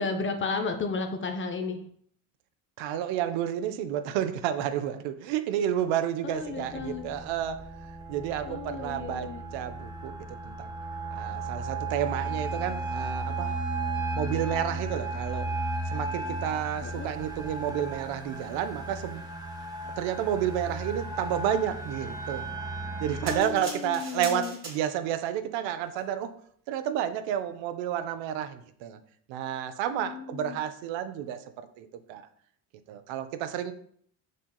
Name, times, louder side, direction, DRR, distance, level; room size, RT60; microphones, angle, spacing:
voice 1, 0.0-1.8 6.2-7.1 8.5-9.4 16.8-17.1 23.3-24.6 29.9-30.6, left 4 dB, 30° left, 7 dB, 0.4 m, -33 dB
voice 2, 2.8-7.7 8.1-10.7 11.1-13.6 14.1-15.5 15.9-19.2 20.0-22.5 23.0-26.3 26.7-29.0 29.3-32.3 32.9-33.7, right 10 dB, 70° right, 10 dB, 0.6 m, -31 dB
sound 1, 6.3-23.4, right 2 dB, 10° right, 0.7 m, -35 dB
sound 2, 23.3-25.2 25.9-26.0, right 3 dB, 25° right, 1.2 m, -41 dB
6.2 x 2.8 x 2.2 m, 0.63 s
supercardioid pair, 70°, 47 cm